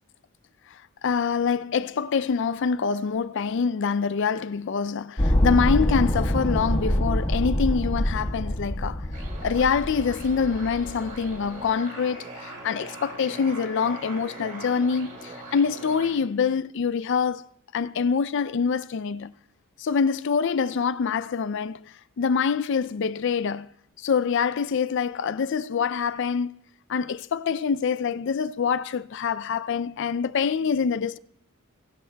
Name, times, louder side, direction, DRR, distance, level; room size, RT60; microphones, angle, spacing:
voice 1, 1.0-9.0 9.4-17.5 17.7-19.3 19.8-21.8 22.2-23.7 24.0-26.5 26.9-31.2, left 6 dB, 55° left, 0.4 m, -25 dB
sound 1, 5.2-11.5, equal, 25° left, 1.4 m, -25 dB
sound 2, 9.1-16.1, right 2 dB, 35° right, 4.3 m, -41 dB
22.5 x 17.0 x 2.2 m
head